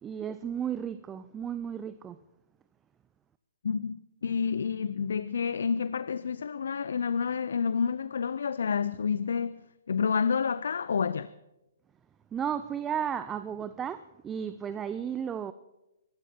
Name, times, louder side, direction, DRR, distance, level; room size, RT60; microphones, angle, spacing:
voice 1, 0.0-2.2 12.3-15.5, right 8 dB, 15° right, 0.5 m, -34 dB
voice 2, 3.6-11.3, left 6 dB, 75° left, 0.5 m, -29 dB
23.5 x 11.5 x 4.4 m
hypercardioid pair, 135°, 0 cm